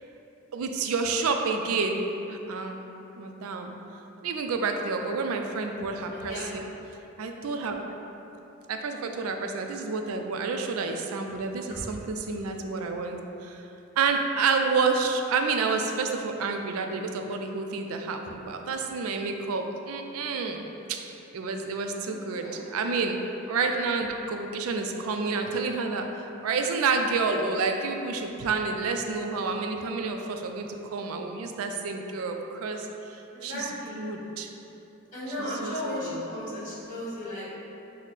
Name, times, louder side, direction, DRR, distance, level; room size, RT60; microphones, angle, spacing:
voice 1, 0.5-2.8 3.1-3.7 4.2-6.6 7.2-7.8 8.7-13.6 14.0-21.0 21.3-23.2 23.5-34.5 35.4-35.7 36.0-36.2, right 4 dB, 75° right, 4 dB, 0.4 m, -29 dB
voice 2, 4.9-5.4 6.1-6.4 11.7-11.8 22.1-22.9 33.3-34.0 35.1-37.5, left 1 dB, 35° left, -8 dB, 1.4 m, -36 dB
6.2 x 2.1 x 4.0 m, 3.0 s
head